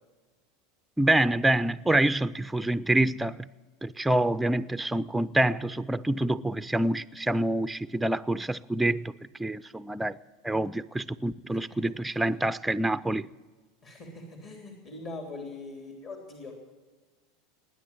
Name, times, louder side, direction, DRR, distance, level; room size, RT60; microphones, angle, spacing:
voice 1, 1.0-3.4 3.8-9.1 9.4-10.2 10.4-13.3, right 1 dB, 5° right, 0.4 m, -26 dB
voice 2, 11.5-11.8 12.1-12.2 13.8-16.5, left 3 dB, 50° left, 3.2 m, -42 dB
20.0 x 9.6 x 7.2 m
hypercardioid pair, 90°, 0 cm